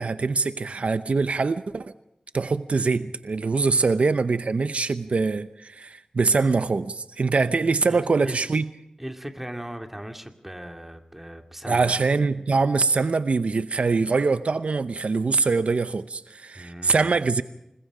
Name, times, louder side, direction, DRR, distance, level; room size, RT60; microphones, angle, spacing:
voice 1, 0.0-1.9 2.3-8.7 11.7-17.4, right 4 dB, 70° right, 0.8 m, -23 dB
voice 2, 7.9-8.4 9.0-11.9 16.6-17.2, right 1 dB, 10° right, 2.5 m, -38 dB
28.5 x 21.5 x 5.0 m
wide cardioid pair, 70°, 2 cm